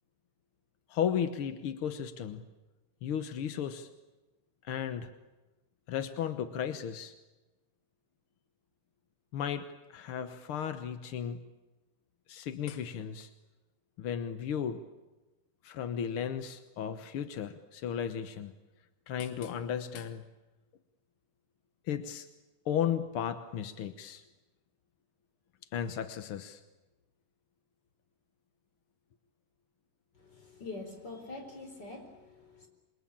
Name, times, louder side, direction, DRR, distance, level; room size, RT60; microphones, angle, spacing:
voice 1, 0.9-2.5 3.0-3.9 4.6-5.1 5.9-7.1 9.3-11.4 12.3-13.3 14.0-14.8 15.6-18.5 19.1-20.2 21.9-22.3 22.6-24.2 25.7-26.6, left 8 dB, 65° left, 9 dB, 1.3 m, -35 dB
voice 2, 30.2-32.7, left 3 dB, 30° left, 3 dB, 5.0 m, -45 dB
27.0 x 23.0 x 8.7 m, 1.1 s
omnidirectional pair, 3.8 m